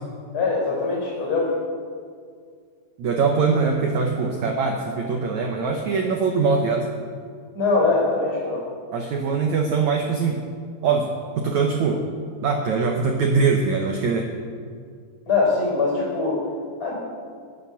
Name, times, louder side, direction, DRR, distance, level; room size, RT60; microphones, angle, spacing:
voice 1, 0.3-1.5 7.5-8.6 15.3-16.4 16.8-16.9, left 3 dB, 25° left, -2 dB, 4.7 m, -22 dB
voice 2, 3.0-6.9 8.9-10.4 10.8-12.0 12.4-14.3, right 4 dB, 75° right, 2 dB, 1.6 m, -22 dB
19.0 x 8.2 x 7.0 m, 2.1 s
omnidirectional pair, 4.8 m